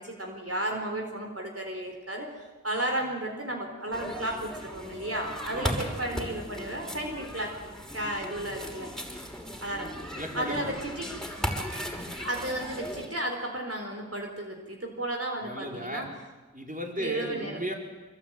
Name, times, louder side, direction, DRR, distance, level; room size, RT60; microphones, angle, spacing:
voice 1, 0.0-7.5 7.9-8.9 9.6-9.9 10.3-11.2 12.2-16.1 17.0-17.6, right 1 dB, 55° right, 1 dB, 4.1 m, -33 dB
sound 1, 3.9-13.1, equal, ahead, 5.5 m, -37 dB
voice 2, 5.5-5.9 10.1-10.7 15.4-16.0 16.5-17.7, right 1 dB, 30° right, 1 dB, 4.9 m, -35 dB
25.5 x 23.5 x 9.1 m, 1.2 s
wide cardioid pair, 40°, 29 cm